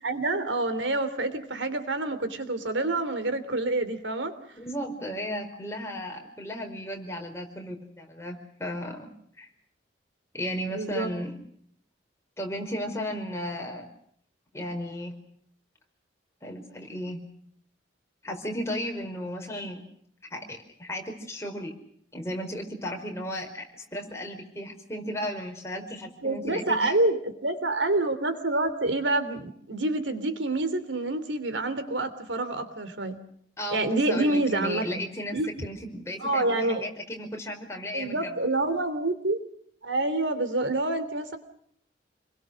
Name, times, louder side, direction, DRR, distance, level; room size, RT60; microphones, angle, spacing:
voice 1, 0.0-4.3 10.7-11.1 26.2-33.2 33.7-35.0 35.3-35.7 36.2-36.9 37.9-39.4 39.8-41.4, right 2 dB, 85° right, 11 dB, 3.2 m, -27 dB
voice 2, 4.6-9.1 9.4-9.5 10.3-11.3 12.4-13.9 14.5-15.1 16.4-17.2 18.2-19.8 20.3-21.7 22.1-23.6 23.9-27.0 33.6-38.4, equal, 15° left, 2 dB, 5.0 m, -35 dB
28.5 x 22.0 x 6.6 m, 0.65 s
head